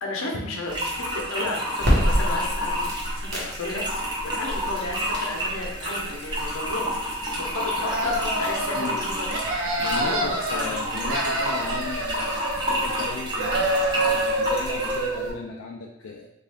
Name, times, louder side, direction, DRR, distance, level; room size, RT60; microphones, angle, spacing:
voice 1, 0.0-9.4 9.8-10.8, left 2 dB, 85° left, 0 dB, 0.7 m, -33 dB
sound 1, 0.7-15.1, equal, 20° right, 0.6 m, -30 dB
record start, 1.8-15.3, equal, 50° right, 1.0 m, -32 dB
sound 2, 7.8-8.9 9.3-10.6 10.9-13.1 13.4-15.4, right 1 dB, 75° right, 0.5 m, -27 dB
voice 2, 9.8-16.3, left 4 dB, 65° left, -1 dB, 0.3 m, -36 dB
3.4 x 2.4 x 3.4 m, 0.91 s
head